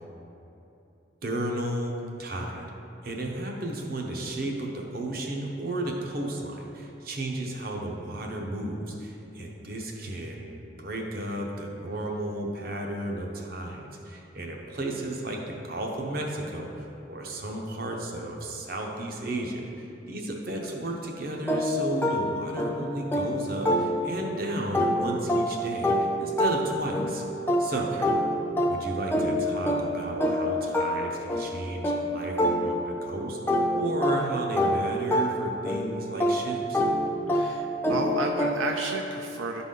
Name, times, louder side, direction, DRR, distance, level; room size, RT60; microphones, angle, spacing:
voice 1, 1.2-2.7 3.0-27.2 27.6-27.9 28.7-36.8, right 1 dB, 50° right, 1 dB, 0.8 m, -33 dB
sound 1, 21.5-24.3 24.7-33.1 33.5-38.9, equal, 10° left, 0.5 m, -27 dB
voice 2, 27.7-28.0 37.3-39.6, right 3 dB, 85° right, 2 dB, 0.4 m, -32 dB
11.0 x 4.0 x 3.8 m, 2.9 s
head